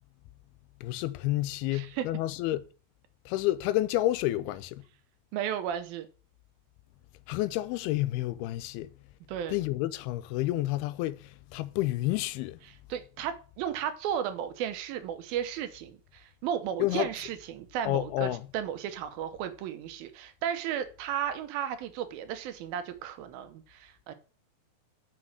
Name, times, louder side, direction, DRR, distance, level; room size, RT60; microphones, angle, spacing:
voice 1, 0.8-2.6 3.3-4.8 7.3-8.9 9.5-12.6 16.8-17.1 17.9-18.5, left 16 dB, 85° left, 2.6 m, -30 dB
voice 2, 1.7-2.1 5.3-6.1 9.3-9.6 12.9-24.1, right 9 dB, 75° right, 2.5 m, -34 dB
6.1 x 5.9 x 6.2 m
omnidirectional pair, 4.4 m